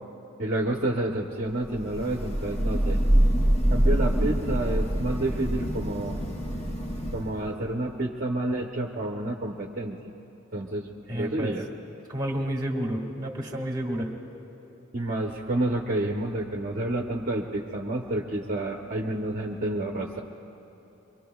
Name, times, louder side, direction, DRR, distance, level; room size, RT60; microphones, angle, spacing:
voice 1, 0.4-3.0 3.7-6.2 7.1-10.0 10.5-11.6 14.9-20.2, right 1 dB, 45° right, -1 dB, 0.8 m, -29 dB
Thunder / Rain, 1.7-7.5, right 1 dB, 35° left, 1.2 m, -25 dB
voice 2, 11.1-11.5 12.1-14.1, equal, 20° right, 0 dB, 1.8 m, -30 dB
24.5 x 24.0 x 2.3 m, 2.9 s
head